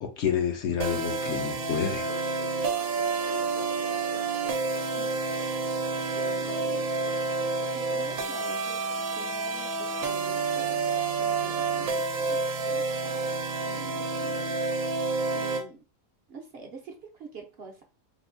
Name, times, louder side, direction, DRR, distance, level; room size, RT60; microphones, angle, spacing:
voice 1, 0.0-2.1, left 8 dB, 65° left, 0.8 m, -29 dB
sound 1, 0.8-15.6, right 4 dB, 85° right, 1.0 m, -29 dB
sound 2, 2.0-8.2, left 5 dB, 90° left, 0.4 m, -46 dB
voice 2, 5.0-5.6 6.1-6.9 7.7-10.8 11.2-14.6 15.3-15.8 16.3-17.8, right 4 dB, 60° right, 0.8 m, -46 dB
3.5 x 2.6 x 2.5 m
omnidirectional pair, 1.4 m